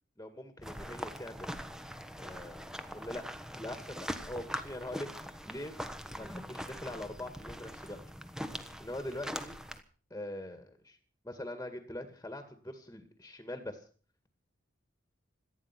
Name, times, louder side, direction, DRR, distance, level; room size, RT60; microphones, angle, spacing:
voice 1, 0.2-1.6 2.2-3.2 3.6-5.8 6.2-8.0 8.5-9.6 10.1-11.0 11.2-13.9, left 1 dB, 15° left, 8 dB, 2.0 m, -43 dB
sound 1, 0.6-9.8, equal, 5° right, 1.3 m, -42 dB
18.0 x 13.5 x 6.0 m, 0.40 s
head